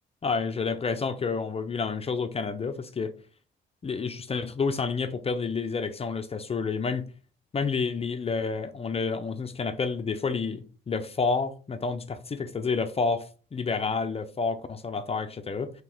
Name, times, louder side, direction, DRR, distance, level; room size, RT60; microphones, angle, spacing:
voice 1, 0.2-3.1 3.8-7.1 7.5-15.7, left 4 dB, 30° left, 0.5 m, -29 dB
3.7 x 3.1 x 4.4 m
cardioid pair, 90°, 20 cm